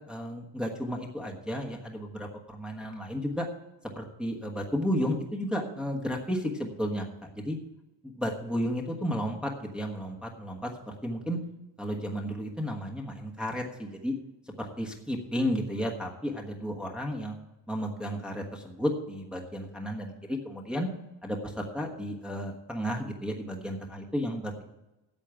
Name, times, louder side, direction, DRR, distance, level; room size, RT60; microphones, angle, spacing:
voice 1, 0.1-3.5 3.9-7.6 8.2-11.4 11.8-14.1 14.6-17.3 17.7-20.9 21.2-24.6, equal, ahead, -1 dB, 1.4 m, -33 dB
8.7 x 7.6 x 9.0 m, 0.97 s
wide cardioid pair, 145°, 44 cm